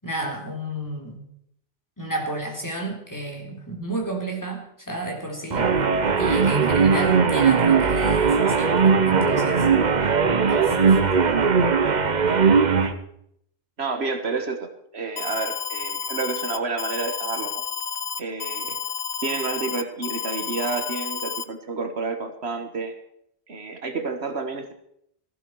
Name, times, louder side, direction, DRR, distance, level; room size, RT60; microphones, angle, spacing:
voice 1, 0.0-1.2 2.0-5.7 6.2-9.7 10.5-11.0, right 1 dB, 15° left, 0 dB, 3.6 m, -32 dB
sound 1, 5.5-12.9, right 5 dB, 45° right, 1.0 m, -19 dB
voice 2, 13.8-17.6 18.2-18.8 19.2-23.0 23.5-24.7, right 4 dB, 75° right, 7 dB, 1.7 m, -30 dB
Alarm, 15.2-21.4, left 7 dB, 80° left, 1.1 m, -31 dB
17.5 x 15.0 x 4.7 m, 0.73 s
omnidirectional pair, 1.1 m